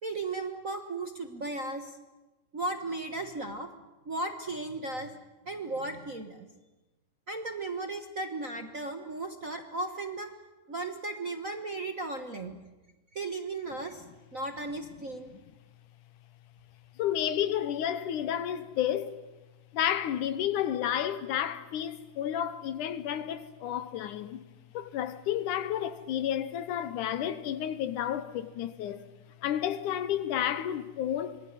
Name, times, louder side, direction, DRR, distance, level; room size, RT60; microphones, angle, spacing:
voice 1, 0.0-2.0 2.5-3.7 4.0-5.1 5.4-6.5 7.3-10.3 10.7-12.6 13.1-14.0 14.3-15.3, right 2 dB, 60° right, 0.8 m, -35 dB
voice 2, 17.0-19.2 19.7-24.4 24.7-29.1 29.4-31.4, left 10 dB, 75° left, 2.4 m, -31 dB
26.0 x 21.5 x 9.6 m
omnidirectional pair, 3.8 m